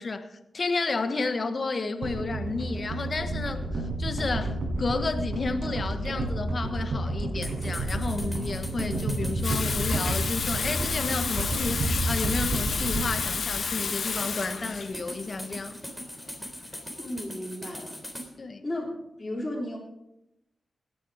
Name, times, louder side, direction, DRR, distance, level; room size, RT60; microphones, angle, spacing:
voice 1, 0.0-15.7 18.4-18.7, left 3 dB, 50° left, 8 dB, 1.3 m, -32 dB
sound 1, 2.0-14.3 14.6-14.8, right 1 dB, 80° right, 5.9 m, -30 dB
sound 2, 7.4-18.3, equal, ahead, 3.4 m, -40 dB
Water tap faucet / Sink (filling or washing), 9.4-17.1, left 5 dB, 70° left, 0.9 m, -31 dB
voice 2, 17.0-18.0 18.6-18.9 19.2-19.8, left 1 dB, 25° left, -6 dB, 3.6 m, -33 dB
17.0 x 10.5 x 5.0 m, 0.89 s
cardioid pair, 70°, 0 cm